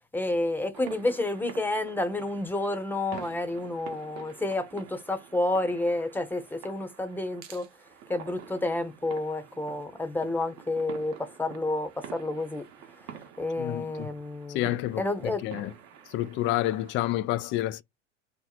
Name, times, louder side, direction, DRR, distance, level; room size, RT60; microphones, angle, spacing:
voice 1, 0.1-7.7 8.1-12.6 13.0-14.6 15.0-15.4, left 2 dB, 5° left, 0.9 m, -30 dB
sound 1, 0.7-17.1, right 8 dB, 50° right, 1.1 m, -48 dB
voice 2, 13.6-14.1 14.5-15.7 16.1-17.8, left 15 dB, 35° left, 0.4 m, -29 dB
3.0 x 2.0 x 4.0 m
hypercardioid pair, 95°, 36 cm